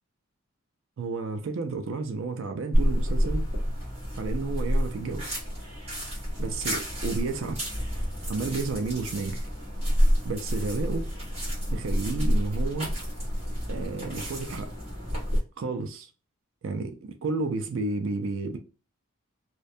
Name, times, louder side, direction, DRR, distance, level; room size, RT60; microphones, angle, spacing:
voice 1, 1.0-3.4 4.2-5.4 6.4-7.6 8.3-9.5 10.2-11.1 11.7-12.9 13.7-14.7 15.6-16.1 16.6-18.6, right 3 dB, 60° right, 0.4 m, -31 dB
sound 1, 2.7-15.4, equal, 30° right, 1.2 m, -28 dB
2.4 x 2.1 x 2.5 m
head